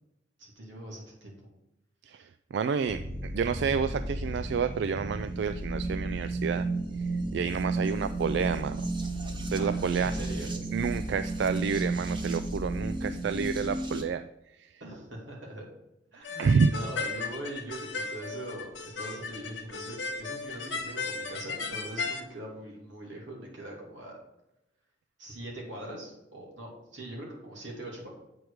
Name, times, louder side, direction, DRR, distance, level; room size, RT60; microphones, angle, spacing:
voice 1, 0.4-1.3 9.5-10.5 14.8-15.6 16.1-24.2 25.2-28.1, right 1 dB, 90° right, -2 dB, 2.7 m, -42 dB
voice 2, 2.1-6.7 7.0-8.8 9.5-10.1 10.7-14.3 14.6-14.7 16.4-16.7, right 6 dB, 65° right, 11 dB, 0.3 m, -29 dB
sound 1, 2.9-14.0, right 2 dB, 25° right, 0.8 m, -33 dB
sound 2, 16.2-22.2, left 4 dB, 80° left, 1.0 m, -36 dB
7.9 x 4.7 x 4.9 m, 0.91 s
head